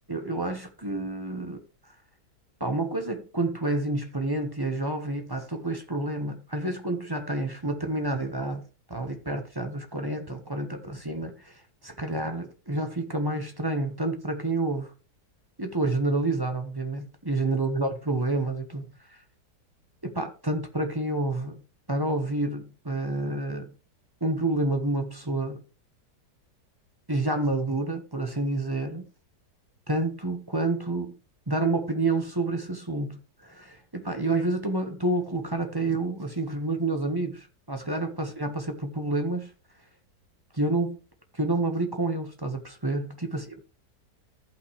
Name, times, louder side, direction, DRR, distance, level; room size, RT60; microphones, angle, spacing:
voice 1, 0.1-1.6 2.6-14.9 15.6-18.8 20.0-21.6 21.9-23.7 24.2-25.6 27.1-29.0 29.9-31.1 31.5-39.5 40.5-41.0 41.3-43.6, right 2 dB, 15° right, 1.0 m, -29 dB
15.0 x 5.7 x 3.2 m
omnidirectional pair, 1.8 m